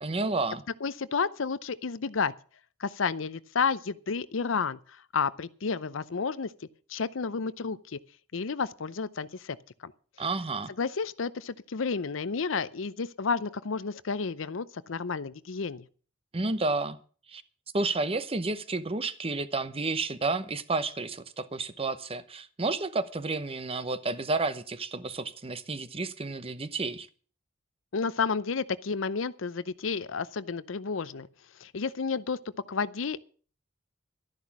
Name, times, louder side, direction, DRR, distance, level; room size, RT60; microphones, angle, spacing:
voice 1, 0.0-0.6 10.2-10.7 16.3-17.0 17.3-17.4 17.7-27.1, right 3 dB, 30° right, 0.9 m, -31 dB
voice 2, 0.8-2.3 2.8-6.5 6.9-8.0 8.3-9.6 9.8-9.9 10.8-15.9 27.9-31.3 31.6-32.4 32.7-33.2, left 5 dB, 90° left, 0.7 m, -31 dB
12.5 x 11.0 x 6.0 m
head